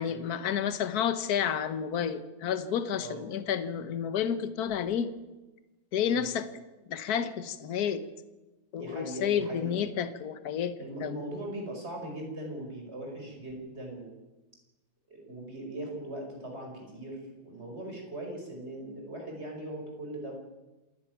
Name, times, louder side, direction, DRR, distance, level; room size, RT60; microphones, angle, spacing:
voice 1, 0.0-5.1 5.9-6.5 6.9-8.0 8.7-10.7 11.0-11.1, left 8 dB, 55° left, 12 dB, 1.5 m, -30 dB
voice 2, 8.7-9.8 10.8-14.2 15.1-20.3, right 1 dB, 35° right, 1 dB, 5.5 m, -40 dB
27.0 x 11.0 x 9.4 m, 1.1 s
omnidirectional pair, 2.1 m